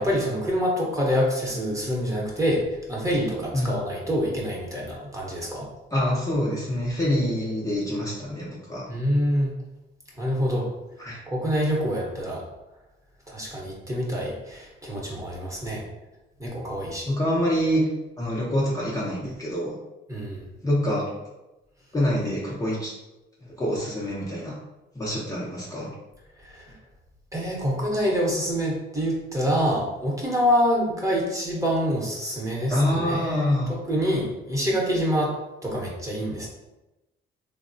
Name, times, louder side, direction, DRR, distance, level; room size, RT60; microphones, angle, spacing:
voice 1, 0.0-5.7 8.9-9.5 10.2-10.7 11.3-12.4 13.3-15.8 16.4-17.1 20.1-20.5 26.4-26.7 27.3-35.3 35.6-36.5, equal, 15° right, -4 dB, 0.9 m, -26 dB
voice 2, 5.9-8.9 11.0-11.2 17.1-17.8 18.2-19.7 20.6-21.1 21.9-22.9 23.6-24.6 25.0-25.9 32.7-33.7, left 1 dB, 15° left, -6 dB, 0.6 m, -26 dB
3.3 x 2.0 x 2.6 m, 1.0 s
cardioid pair, 90°, 20 cm